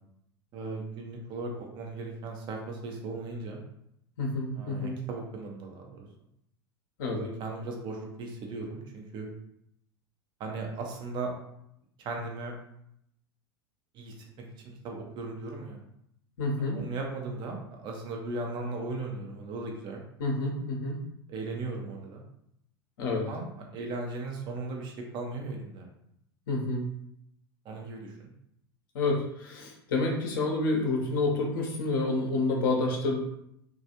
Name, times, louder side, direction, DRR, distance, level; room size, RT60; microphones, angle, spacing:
voice 1, 0.5-3.6 4.6-6.1 7.1-9.3 10.4-11.3 12.0-12.5 13.9-14.1 14.8-15.8 16.7-20.0 21.3-22.2 23.3-25.9 27.7-28.3, right 3 dB, 35° right, 1 dB, 0.6 m, -37 dB
voice 2, 4.2-5.0 7.0-7.2 16.4-16.8 20.2-21.0 23.0-23.2 26.5-26.8 28.9-33.2, left 2 dB, 60° left, 0 dB, 0.7 m, -28 dB
2.4 x 2.2 x 2.8 m, 0.76 s
figure-of-eight pair, 80°, 13 cm